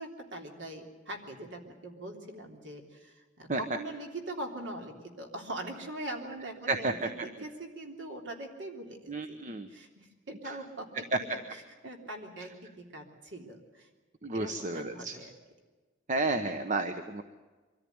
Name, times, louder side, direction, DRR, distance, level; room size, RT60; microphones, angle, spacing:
voice 1, 0.0-13.9 14.3-15.3, right 1 dB, 75° right, 2 dB, 3.4 m, -42 dB
voice 2, 9.1-9.7 10.4-10.6 14.2-15.2 16.1-17.2, right 2 dB, 40° right, 8 dB, 1.0 m, -31 dB
24.0 x 14.0 x 9.5 m, 1.3 s
head